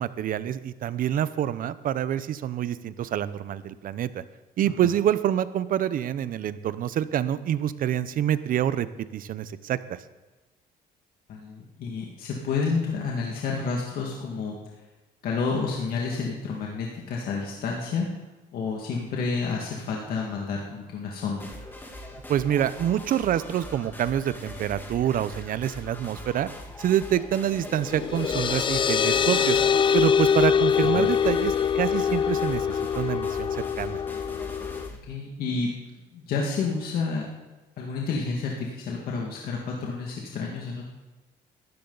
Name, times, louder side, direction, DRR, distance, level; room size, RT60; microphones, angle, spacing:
voice 1, 0.0-4.2 4.6-8.9 9.1-10.0 22.3-26.5 26.8-29.6 29.9-34.0, right 10 dB, 55° right, 15 dB, 0.7 m, -26 dB
voice 2, 11.3-14.6 15.2-18.1 18.5-21.5 30.9-31.1 35.1-35.7 36.1-37.3 37.8-40.9, left 4 dB, 65° left, -2 dB, 2.1 m, -30 dB
sound 1, 21.4-35.0, left 1 dB, 10° left, 2.0 m, -42 dB
sound 2, 27.7-34.9, left 7 dB, 30° left, 0.4 m, -24 dB
17.5 x 14.0 x 4.0 m, 1.2 s
cardioid pair, 110°, 17 cm